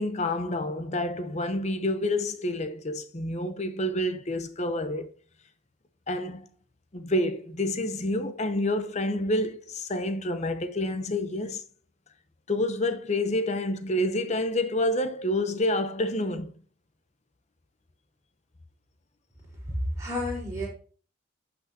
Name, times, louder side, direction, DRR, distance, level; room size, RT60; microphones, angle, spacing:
voice 1, 0.0-5.1 6.1-6.5 6.9-11.6 12.5-16.5, left 1 dB, 35° left, 0.7 m, -28 dB
voice 2, 19.7-20.7, left 1 dB, 15° right, 4.3 m, -30 dB
11.0 x 6.0 x 2.8 m
head